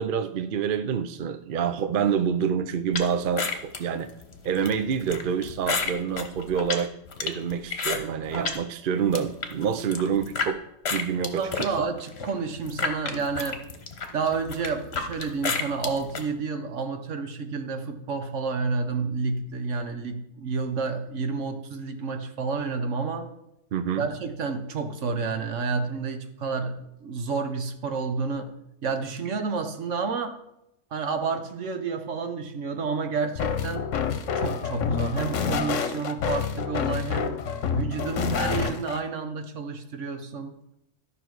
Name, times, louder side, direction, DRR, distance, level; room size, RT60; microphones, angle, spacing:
voice 1, 0.0-4.1 4.4-6.9 7.2-10.6 10.9-11.8 23.7-24.1, right 7 dB, 55° right, 9 dB, 0.7 m, -27 dB
sound 1, 2.9-8.6 9.0-10.5 10.8-16.2, left 5 dB, 55° left, 1.3 m, -31 dB
voice 2, 11.3-13.6 14.1-23.3 24.0-28.5 28.8-30.3 30.9-33.9 34.3-37.4 37.7-40.5, right 4 dB, 70° right, 7 dB, 1.3 m, -30 dB
sound 2, 33.3-39.0, left 6 dB, 75° left, 1.1 m, -28 dB
12.0 x 5.8 x 4.7 m, 0.82 s
omnidirectional pair, 1.3 m